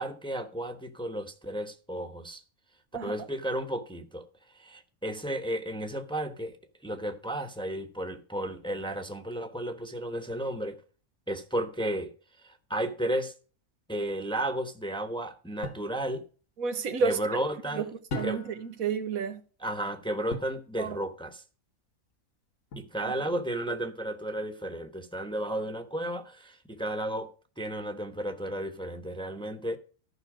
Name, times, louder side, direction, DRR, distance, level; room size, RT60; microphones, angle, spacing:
voice 1, 0.0-2.4 3.0-4.3 4.5-6.6 6.8-10.8 11.3-12.1 12.4-13.3 13.9-16.3 17.0-17.9 18.2-18.4 19.6-21.4 22.7-27.3 27.6-29.8, right 1 dB, 5° left, 1.0 m, -33 dB
sound 1, 15.6-15.9 18.1-18.7 20.3-20.6 22.7-23.2, left 2 dB, 70° left, 1.6 m, -38 dB
voice 2, 16.6-17.2 17.8-17.9 18.1-19.4 20.8-21.0 23.0-23.1, right 5 dB, 85° right, 1.5 m, -30 dB
14.0 x 5.9 x 5.0 m
omnidirectional pair, 1.4 m